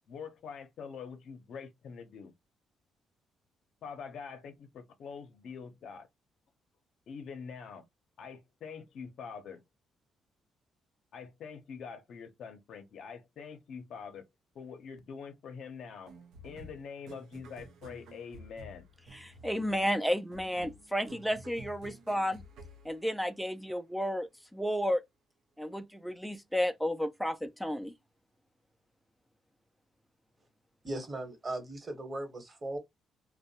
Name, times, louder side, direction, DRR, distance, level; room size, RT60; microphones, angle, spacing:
voice 1, 0.1-2.3 3.8-6.1 7.1-7.9 8.2-9.6 11.1-14.3 14.5-16.1 16.4-18.9, left 6 dB, 70° left, 0.6 m, -45 dB
sound 1, 16.1-23.7, right 1 dB, 80° right, 0.5 m, -51 dB
voice 2, 19.1-22.4 22.8-25.0 25.6-27.9, equal, ahead, 0.3 m, -32 dB
voice 3, 30.8-32.8, right 1 dB, 30° right, 1.1 m, -38 dB
2.6 x 2.1 x 2.7 m
cardioid pair, 90°, 0 cm